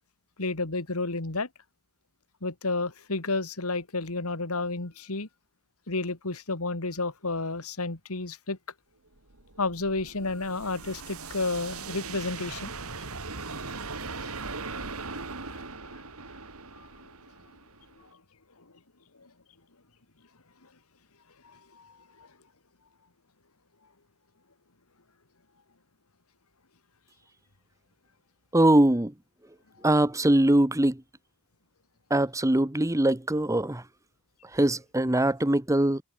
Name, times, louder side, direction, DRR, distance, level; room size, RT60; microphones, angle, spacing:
voice 1, 0.4-1.5 2.4-5.3 5.9-8.6 9.6-12.7 19.2-19.3 21.5-21.9, left 3 dB, 70° left, 2.3 m, -31 dB
sound 1, 9.2-18.1, right 4 dB, 70° right, 3.9 m, -39 dB
voice 2, 28.5-29.1 29.8-31.0 32.1-33.8 34.5-36.0, right 1 dB, 15° right, 1.1 m, -22 dB
head